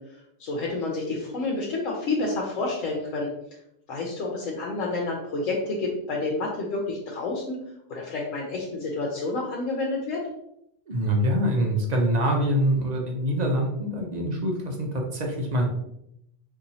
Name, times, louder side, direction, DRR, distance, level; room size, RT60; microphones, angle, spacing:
voice 1, 0.0-3.3 3.9-7.6 7.9-10.2, left 3 dB, 75° left, -2 dB, 1.1 m, -29 dB
voice 2, 10.9-15.7, equal, 45° right, 1 dB, 0.6 m, -25 dB
4.2 x 2.7 x 2.6 m, 0.78 s
omnidirectional pair, 1.3 m